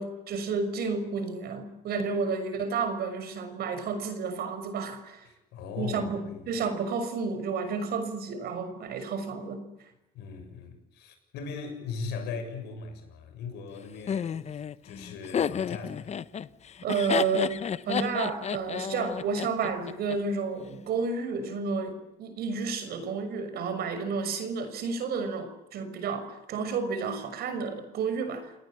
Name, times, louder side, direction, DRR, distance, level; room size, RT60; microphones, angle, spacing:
voice 1, 0.0-5.2 5.8-9.7 16.8-17.6 17.9-28.5, right 5 dB, 65° right, 6.2 m, -31 dB
voice 2, 5.2-6.5 10.1-16.2, left 5 dB, 85° left, 7.5 m, -39 dB
Laughter, 14.1-20.2, left 8 dB, 40° left, 1.0 m, -31 dB
29.5 x 19.5 x 8.9 m
cardioid pair, 110°, 17 cm